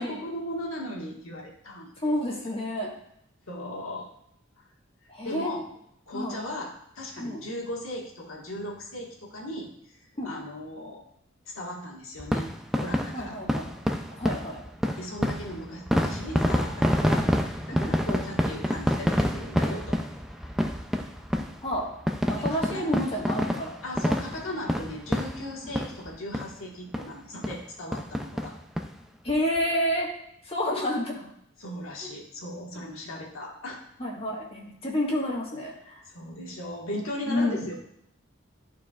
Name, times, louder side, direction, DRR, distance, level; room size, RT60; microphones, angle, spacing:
voice 1, 0.0-2.1 3.5-4.1 4.6-4.7 5.2-5.6 6.1-10.0 10.2-11.0 11.5-12.5 12.8-13.4 15.0-20.0 21.5-21.6 22.3-22.9 23.8-28.6 31.6-33.8 36.1-37.7, left 1 dB, 90° left, -1 dB, 1.6 m, -37 dB
voice 2, 2.0-2.9 5.1-5.5 6.1-6.4 7.2-7.4 10.2-10.3 13.1-13.6 14.1-14.6 17.1-17.3 17.7-17.9 21.6-21.9 22.3-23.8 29.2-30.1 30.4-31.3 32.7-32.8 34.0-36.0 37.3-37.6, left 1 dB, 30° left, -2 dB, 1.5 m, -29 dB
sound 1, 12.2-26.1 26.3-26.5 26.9-27.0 27.4-27.6 27.9-28.9 29.3-29.4 29.6-29.7, equal, ahead, 0.4 m, -27 dB
13.0 x 4.6 x 2.4 m, 0.73 s
head